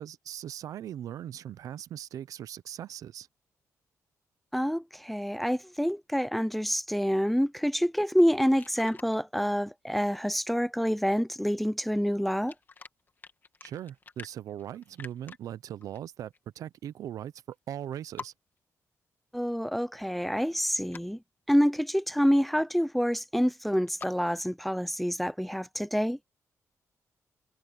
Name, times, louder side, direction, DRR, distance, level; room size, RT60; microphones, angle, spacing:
voice 1, 0.0-3.3 13.6-17.3 17.7-18.3, right 10 dB, 80° right, 0.6 m, -39 dB
voice 2, 4.5-12.5 19.3-21.2 21.5-26.2, equal, ahead, 0.6 m, -27 dB
sound 1, 8.2-9.2 12.3-15.4 15.8-16.0 16.3-16.4 17.5-17.6 17.8-17.9 18.2-18.3 20.5-21.0 23.7-24.1, left 5 dB, 35° left, 2.2 m, -46 dB
cardioid pair, 110°, 6 cm